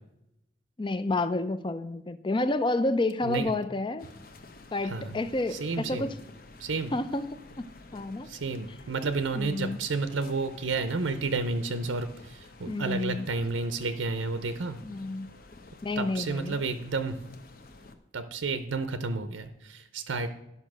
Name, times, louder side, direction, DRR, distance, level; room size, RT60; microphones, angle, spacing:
voice 1, 0.8-4.1 4.7-6.2 6.9-7.6 7.9-8.3 9.3-9.9 12.7-13.3 14.8-15.3 15.8-16.6, left 2 dB, 25° left, 0.4 m, -30 dB
sound 1, 4.0-17.9, left 2 dB, 50° left, 0.8 m, -51 dB
voice 2, 4.8-5.2 5.5-6.1 6.6-6.9 8.2-14.8 16.0-17.2 18.1-20.3, right 3 dB, 90° right, 0.7 m, -31 dB
10.5 x 5.5 x 6.1 m
head